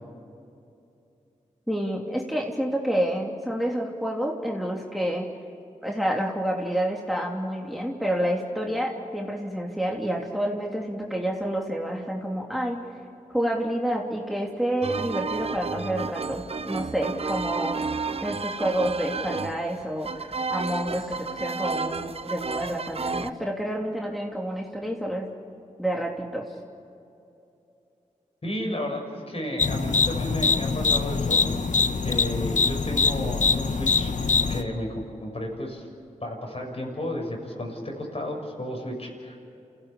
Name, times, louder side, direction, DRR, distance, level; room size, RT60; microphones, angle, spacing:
voice 1, 1.7-5.3 5.8-12.8 13.3-17.9 18.2-25.3 25.8-26.4, right 1 dB, ahead, -1 dB, 3.1 m, -28 dB
sound 1, 14.8-23.3, right 4 dB, 45° right, 0.8 m, -32 dB
voice 2, 28.4-31.4 32.0-34.1 34.5-34.9 35.2-35.9 36.2-39.4, left 1 dB, 45° left, 1 dB, 6.6 m, -32 dB
sound 2, 29.6-34.6, left 5 dB, 65° left, 1.1 m, -23 dB
28.0 x 16.5 x 8.6 m, 2.8 s
cardioid pair, 40°, 14 cm